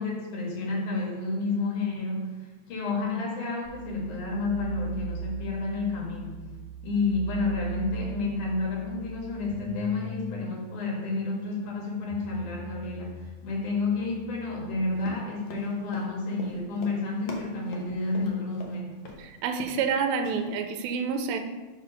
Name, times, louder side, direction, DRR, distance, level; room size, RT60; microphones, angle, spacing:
voice 1, 0.0-6.4 6.8-19.0, left 3 dB, 85° left, -2 dB, 3.1 m, -30 dB
sound 1, 3.6-15.1, right 5 dB, 35° left, 1.6 m, -40 dB
Run, 15.0-18.7 19.1-19.2 19.5-19.9 20.2-20.4, left 1 dB, 65° left, 1.2 m, -42 dB
voice 2, 19.2-21.4, right 5 dB, 80° right, 6 dB, 1.9 m, -28 dB
5.7 x 4.9 x 6.1 m, 1.2 s
omnidirectional pair, 3.5 m